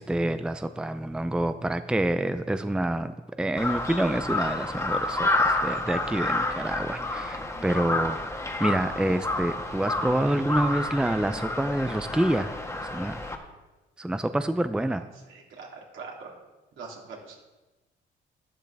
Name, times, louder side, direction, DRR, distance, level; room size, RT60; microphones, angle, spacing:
voice 1, 0.0-12.5 12.8-13.3 14.0-15.0, right 1 dB, 5° right, 10 dB, 0.5 m, -27 dB
Crow, 3.6-13.3, left 2 dB, 15° left, 1.6 m, -29 dB
voice 2, 15.3-15.7 15.9-16.3 16.8-17.4, right 4 dB, 75° right, -2 dB, 3.3 m, -42 dB
12.5 x 12.0 x 3.5 m, 1.1 s
cardioid pair, 90°, 20 cm